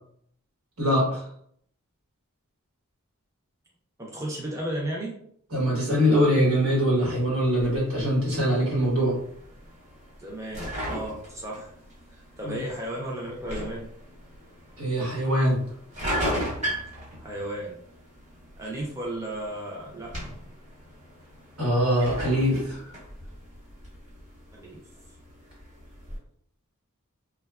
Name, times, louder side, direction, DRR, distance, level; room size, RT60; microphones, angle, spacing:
voice 1, 0.8-1.2 5.5-9.2 12.4-12.6 14.8-15.6 21.6-22.8, equal, 80° right, -4 dB, 1.1 m, -23 dB
voice 2, 4.0-5.2 10.2-11.7 12.1-13.9 17.2-17.8 18.6-20.1 24.5-24.8, right 1 dB, 15° right, -3 dB, 0.4 m, -34 dB
sound 1, 7.6-26.2, equal, 30° right, 1.1 m, -38 dB
2.8 x 2.2 x 2.2 m, 0.65 s
head